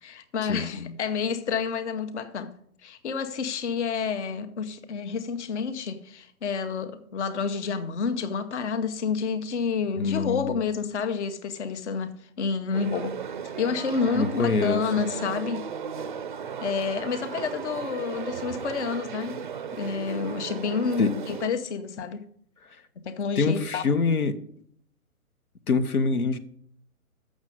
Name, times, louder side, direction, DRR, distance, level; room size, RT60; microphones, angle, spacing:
voice 1, 0.0-2.5 2.8-13.2 13.6-15.6 16.6-19.4 19.7-22.2 23.0-23.8, left 5 dB, 50° left, 1.0 m, -29 dB
voice 2, 10.0-10.5 14.1-14.8 21.0-21.1 23.4-24.3 25.7-26.4, left 4 dB, 80° left, 1.0 m, -24 dB
sound 1, 12.7-21.5, right 7 dB, 35° right, 0.5 m, -36 dB
7.2 x 6.3 x 7.7 m
figure-of-eight pair, 135°, 44 cm